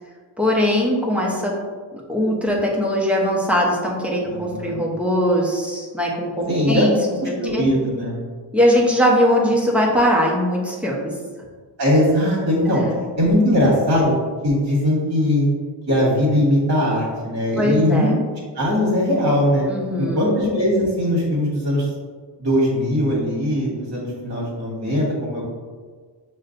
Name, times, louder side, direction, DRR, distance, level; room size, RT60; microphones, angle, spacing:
voice 1, 0.4-1.5 2.1-7.6 8.5-11.1 12.8-13.0 17.6-18.2 19.7-20.3, equal, 5° right, -3 dB, 0.6 m, -20 dB
voice 2, 4.5-4.8 6.5-6.8 7.2-8.1 11.8-12.8 13.2-14.1 14.4-15.5 15.9-18.1 18.5-19.6 20.0-21.8 22.4-25.4, left 1 dB, 35° right, -6 dB, 1.3 m, -20 dB
6.1 x 2.2 x 2.5 m, 1.5 s
cardioid pair, 115°, 43 cm